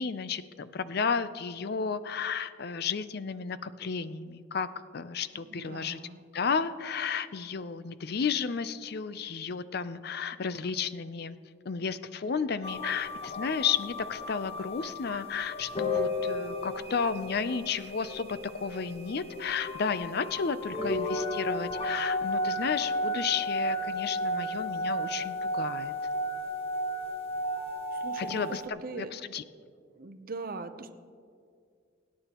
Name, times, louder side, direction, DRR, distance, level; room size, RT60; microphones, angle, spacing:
voice 1, 0.0-4.7 4.9-6.0 6.3-11.4 11.6-25.9 28.2-29.4, left 6 dB, 55° left, 14 dB, 0.5 m, -33 dB
voice 2, 5.3-6.3 27.9-29.1 29.9-30.9, right 3 dB, 50° right, 9 dB, 0.7 m, -41 dB
sound 1, 12.6-28.7, left 1 dB, 30° left, 1.0 m, -33 dB
24.0 x 9.7 x 3.0 m, 2.2 s
head